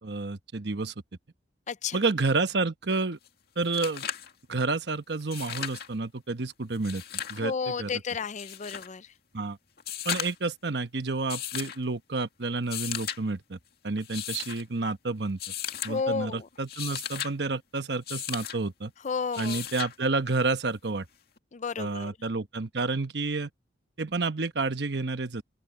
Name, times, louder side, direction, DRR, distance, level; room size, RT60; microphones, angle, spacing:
voice 1, 0.0-0.9 1.9-3.2 3.6-4.1 4.5-7.9 9.3-9.6 10.0-13.6 13.8-15.4 15.8-18.9 19.4-21.1 21.8-23.5 24.0-25.4, right 3 dB, 70° right, 1.1 m, -30 dB
voice 2, 1.7-2.0 7.4-9.1 15.9-16.5 19.0-19.6 21.5-22.1, left 5 dB, 40° left, 0.5 m, -32 dB
sound 1, 3.2-3.3 3.6-4.3 5.2-5.9 6.7-7.4 8.4-8.9 9.8-10.5 11.3-11.8 12.6-13.2 14.0-14.6 15.4-15.9 16.5-17.3 18.1-18.6 19.3-19.9 21.4-21.5, left 10 dB, 60° left, 2.2 m, -35 dB
open air
head